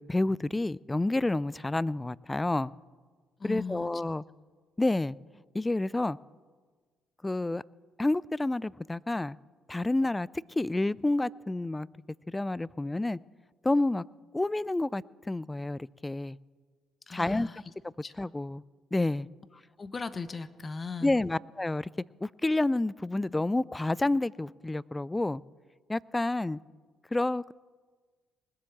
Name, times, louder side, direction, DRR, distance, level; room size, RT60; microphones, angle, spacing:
voice 1, 0.0-2.7 3.4-4.2 4.8-5.2 5.5-6.2 7.2-7.6 8.0-9.4 9.7-10.3 10.6-11.9 12.3-13.2 13.6-14.1 14.3-16.4 17.1-18.6 18.9-19.3 21.0-21.9 22.2-25.4 25.9-26.6 27.1-27.5, left 2 dB, 15° left, 23 dB, 0.3 m, -29 dB
voice 2, 3.4-3.9 17.1-17.6 18.0-18.1 19.8-21.2, left 4 dB, 35° left, 14 dB, 0.9 m, -38 dB
20.0 x 7.8 x 7.1 m, 1.5 s
hypercardioid pair, 50°, 0 cm